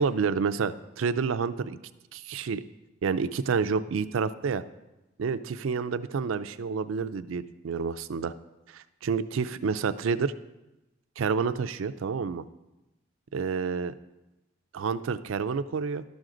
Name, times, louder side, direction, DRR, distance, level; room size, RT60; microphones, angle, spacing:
voice 1, 0.0-1.8 2.1-2.6 3.0-4.6 5.2-8.3 8.7-10.3 11.2-12.4 13.3-13.9 14.7-16.0, right 5 dB, 85° right, 13 dB, 0.4 m, -29 dB
12.5 x 6.2 x 3.8 m, 0.98 s
head